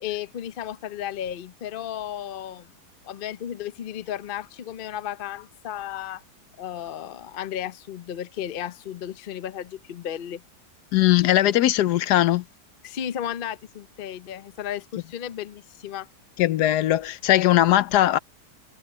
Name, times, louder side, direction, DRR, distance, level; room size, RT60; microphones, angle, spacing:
voice 1, 0.0-2.7 3.0-6.2 6.6-10.4 12.8-16.1, left 10 dB, 50° left, 0.6 m, -34 dB
voice 2, 10.9-12.4 16.4-18.2, left 14 dB, 75° left, 1.2 m, -19 dB
omnidirectional pair, 1.8 m